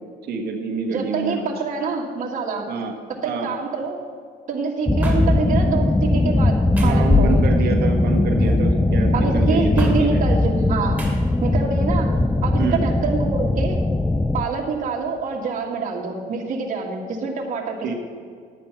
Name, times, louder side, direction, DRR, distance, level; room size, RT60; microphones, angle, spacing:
voice 1, 0.2-1.5 2.7-2.9 3.2-3.5 6.8-10.2 12.6-12.8 17.8-17.9, right 5 dB, 70° right, 3 dB, 1.4 m, -27 dB
voice 2, 0.9-2.6 3.2-4.0 4.5-7.4 9.1-11.0 11.4-12.1 12.4-13.8 14.3-17.7, right 4 dB, 50° right, -2 dB, 1.8 m, -26 dB
sound 1, 4.9-14.4, left 2 dB, 10° left, 0.3 m, -19 dB
sound 2, 5.0-5.2 6.8-7.0 8.4-8.7 9.8-9.9 11.0-11.1, right 1 dB, 10° right, 2.6 m, -35 dB
10.5 x 8.7 x 5.8 m, 2.1 s
cardioid pair, 110°, 17 cm